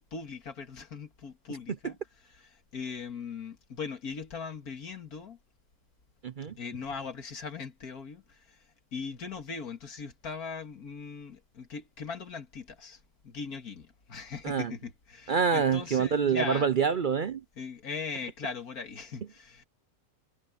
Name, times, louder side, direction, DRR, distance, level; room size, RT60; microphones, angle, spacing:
voice 1, 0.1-2.0 2.3-5.4 6.6-8.6 8.9-13.0 13.2-16.7 17.6-19.6, left 5 dB, 85° left, 2.5 m, -39 dB
voice 2, 6.2-6.5 14.4-14.7 15.3-17.4, right 6 dB, 55° right, 0.6 m, -26 dB
omnidirectional pair, 1.5 m